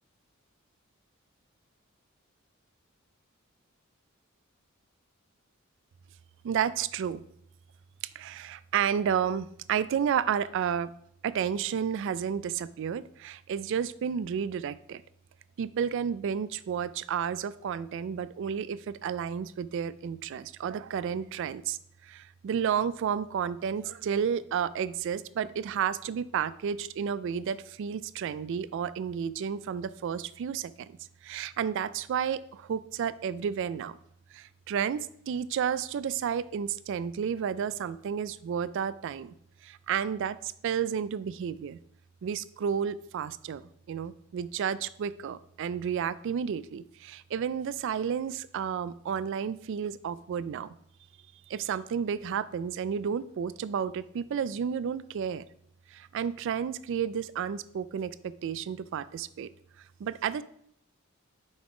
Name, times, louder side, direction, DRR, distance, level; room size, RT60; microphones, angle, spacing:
voice 1, 6.4-7.3 8.2-10.9 11.2-15.0 15.6-21.8 22.0-31.0 31.2-34.0 34.3-39.3 39.6-41.8 42.2-50.7 51.5-55.4 55.9-59.5 60.0-60.4, right 7 dB, 60° right, 17 dB, 0.3 m, -31 dB
6.1 x 4.9 x 3.7 m, 0.70 s
head